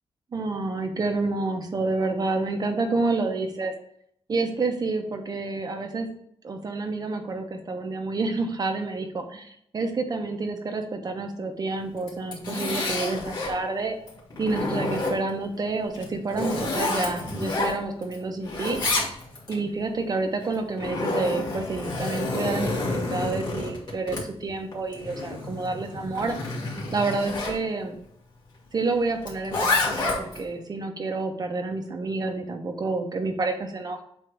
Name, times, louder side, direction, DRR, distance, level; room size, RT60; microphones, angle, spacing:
voice 1, 0.3-3.7 4.3-6.1 6.4-14.0 14.4-18.8 19.5-26.5 26.9-28.0 28.7-34.0, right 3 dB, 35° right, 4 dB, 1.0 m, -29 dB
Zipper (clothing), 12.0-13.6 14.1-15.4 15.9-18.2 18.4-19.6 20.4-27.6 29.2-30.4, left 2 dB, 40° left, 2.3 m, -29 dB
7.8 x 2.9 x 4.9 m, 0.70 s
wide cardioid pair, 160°, 11 cm